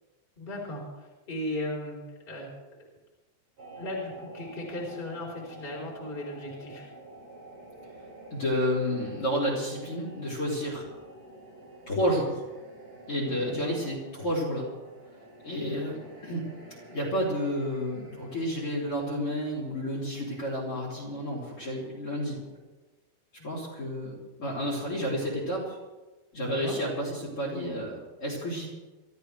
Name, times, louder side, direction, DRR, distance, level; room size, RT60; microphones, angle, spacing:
voice 1, 0.4-0.8 1.3-2.0 2.3-2.5 3.8-6.9 13.4-13.8 23.4-23.5 26.3-26.8, left 1 dB, 15° left, -3 dB, 3.7 m, -36 dB
sound 1, 3.6-22.6, right 1 dB, 75° right, 9.7 m, -49 dB
voice 2, 8.3-10.8 11.9-12.4 13.1-14.7 15.4-16.4 16.9-22.4 23.4-25.8 26.3-28.7, equal, 30° left, -4 dB, 4.0 m, -30 dB
27.5 x 13.5 x 3.4 m, 1.2 s
omnidirectional pair, 5.2 m